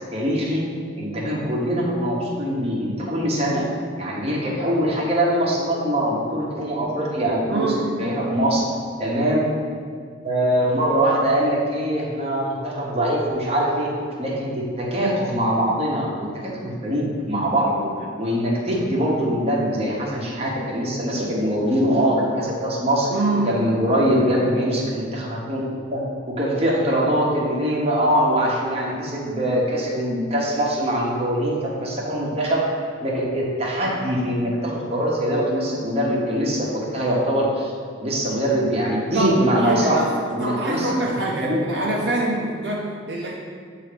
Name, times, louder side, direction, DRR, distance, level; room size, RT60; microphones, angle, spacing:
voice 1, 0.1-0.7 1.0-3.7 4.0-8.6 9.0-9.5 10.2-13.9 14.2-17.9 18.2-23.1 23.4-25.6 25.9-37.7 38.0-40.0 40.3-41.1 41.4-41.8, equal, 30° right, -4 dB, 1.0 m, -23 dB
voice 2, 7.5-8.1 23.1-23.7 39.1-43.3, right 2 dB, 60° right, -3 dB, 0.6 m, -25 dB
7.9 x 2.8 x 5.0 m, 2.1 s
head